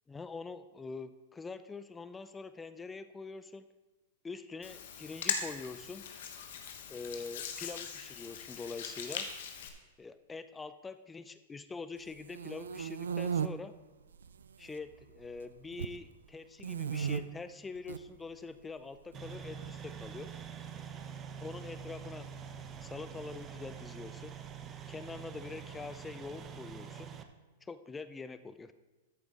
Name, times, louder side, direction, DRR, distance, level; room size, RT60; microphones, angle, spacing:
voice 1, 0.1-3.7 4.2-6.1 6.9-9.3 10.0-13.7 14.6-20.3 21.4-22.3 22.8-24.4 24.9-27.1 27.6-28.7, left 4 dB, 15° left, 12 dB, 0.5 m, -44 dB
Hands, 4.6-9.7, left 7 dB, 65° left, 1.3 m, -40 dB
sound 1, 12.1-13.5 14.1-14.7 15.0-16.0 16.6-17.2 17.7-18.0 19.1-20.1, right 7 dB, 80° right, 0.4 m, -36 dB
sound 2, 19.1-27.2, right 7 dB, 25° right, 0.9 m, -45 dB
13.0 x 7.1 x 3.8 m, 1.2 s
hypercardioid pair, 105°, 0 cm